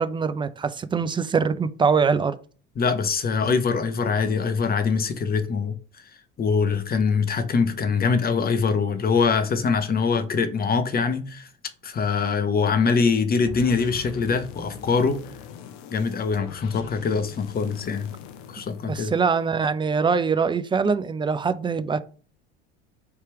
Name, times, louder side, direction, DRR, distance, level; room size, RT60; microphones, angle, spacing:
voice 1, 0.0-2.4 18.9-22.0, right 5 dB, 15° right, 0.4 m, -23 dB
voice 2, 2.8-5.7 6.4-11.5 11.8-15.2 15.9-18.1 18.5-19.1, left 5 dB, 30° left, 0.9 m, -23 dB
sound 1, 13.5-19.6, left 6 dB, 60° left, 0.7 m, -42 dB
3.4 x 2.8 x 4.6 m
hypercardioid pair, 75°, 33 cm